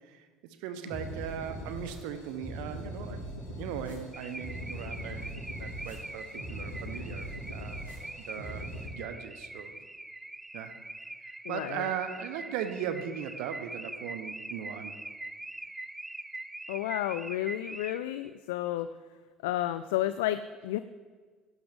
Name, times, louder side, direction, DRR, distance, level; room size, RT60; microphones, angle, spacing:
voice 1, 0.1-7.8 8.2-8.7 8.9-9.7 10.5-10.8 11.5-15.0, right 9 dB, 65° right, 9 dB, 1.1 m, -38 dB
sound 1, 0.9-8.9, equal, 90° left, 4.4 m, -41 dB
Car / Alarm, 4.1-18.3, right 2 dB, 10° right, 0.5 m, -43 dB
voice 2, 11.5-11.9 16.7-18.9 19.4-20.8, left 13 dB, 70° left, 12 dB, 0.3 m, -31 dB
16.5 x 11.5 x 3.6 m, 1.5 s
figure-of-eight pair, 60°, 0 cm